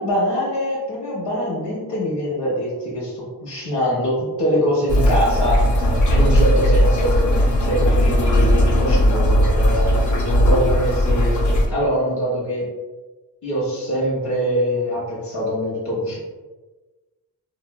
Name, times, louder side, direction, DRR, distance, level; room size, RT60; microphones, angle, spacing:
voice 1, 0.0-5.7 6.1-7.2 7.7-9.9 10.2-12.7 13.4-16.2, equal, 70° left, -7 dB, 1.1 m, -23 dB
sound 1, 4.9-11.7, equal, 45° left, 0.7 m, -17 dB
3.2 x 2.1 x 2.3 m, 1.2 s
cardioid pair, 55°, 42 cm